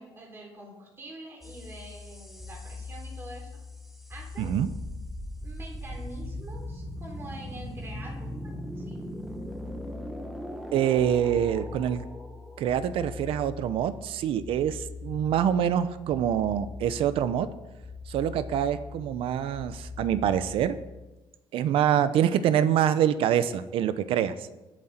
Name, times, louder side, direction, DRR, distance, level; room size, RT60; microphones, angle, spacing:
voice 1, 0.0-3.5 4.1-4.6 5.4-9.0, right 1 dB, 25° right, 0 dB, 3.6 m, -45 dB
sound 1, 1.4-21.0, left 2 dB, ahead, 1.2 m, -40 dB
voice 2, 4.4-4.7 10.7-12.1 12.6-17.5 18.1-20.8 21.5-24.3, right 9 dB, 70° right, 13 dB, 0.8 m, -25 dB
22.5 x 7.6 x 4.4 m, 1.1 s
cardioid pair, 150°, 10 cm